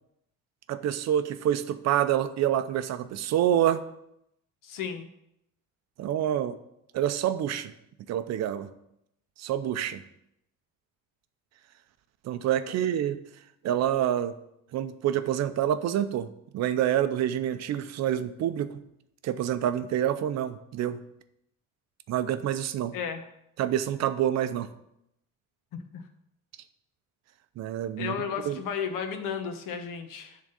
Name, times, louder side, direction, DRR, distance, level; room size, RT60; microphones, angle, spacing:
voice 1, 0.7-3.8 6.0-6.6 6.9-7.7 8.1-8.7 9.4-10.0 12.2-13.2 13.6-14.3 14.7-16.3 16.5-18.8 19.2-21.0 22.1-22.9 23.6-24.7 27.6-28.1 28.4-28.6, right 11 dB, 55° right, 11 dB, 0.6 m, -27 dB
voice 2, 4.6-5.1 22.9-23.3 25.7-26.0 28.0-30.4, left 7 dB, 75° left, 6 dB, 1.2 m, -34 dB
10.5 x 3.8 x 6.8 m, 0.79 s
cardioid pair, 175°, 33 cm